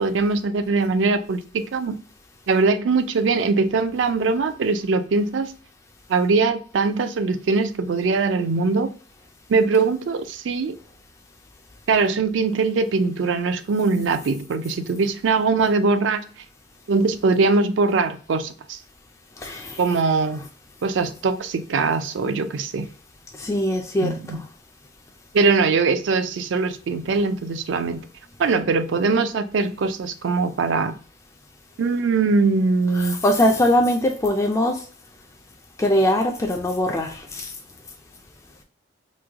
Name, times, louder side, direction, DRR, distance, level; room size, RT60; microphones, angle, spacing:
voice 1, 0.0-2.0 2.5-5.5 6.1-8.9 9.5-10.8 11.9-16.2 16.9-18.8 19.8-20.5 20.8-22.9 24.0-24.4 25.3-28.1 28.4-30.9 31.8-33.2, right 4 dB, 70° right, 0.4 m, -21 dB
voice 2, 19.4-19.8 23.4-24.4 32.9-34.8 35.8-37.5, left 1 dB, 15° left, 0.3 m, -21 dB
3.1 x 2.1 x 3.4 m
head